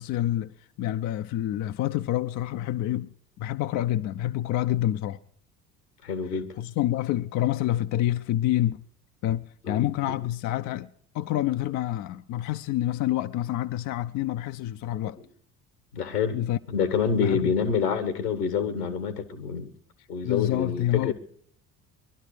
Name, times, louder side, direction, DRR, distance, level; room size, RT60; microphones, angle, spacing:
voice 1, 0.0-3.1 3.4-5.2 6.6-8.8 9.2-10.9 11.1-15.2 16.3-16.6 17.2-17.5 20.2-21.1, left 13 dB, 40° left, 0.6 m, -27 dB
voice 2, 6.0-6.5 9.6-10.2 15.9-16.4 16.7-19.7 20.1-21.1, left 6 dB, 80° left, 1.8 m, -27 dB
22.0 x 12.0 x 4.9 m
figure-of-eight pair, 55°, 46 cm